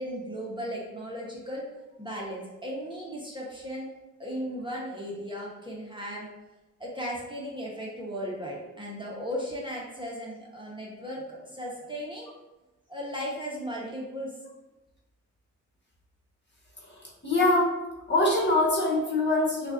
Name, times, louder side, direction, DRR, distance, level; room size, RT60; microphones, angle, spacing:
voice 1, 0.0-1.7 2.0-3.9 4.2-6.3 6.8-12.3 12.9-14.3, equal, 15° right, -4 dB, 1.1 m, -36 dB
voice 2, 17.2-17.7 18.1-19.7, left 2 dB, 35° left, -4 dB, 1.4 m, -23 dB
6.1 x 2.5 x 2.6 m, 1.0 s
cardioid pair, 55°, 30 cm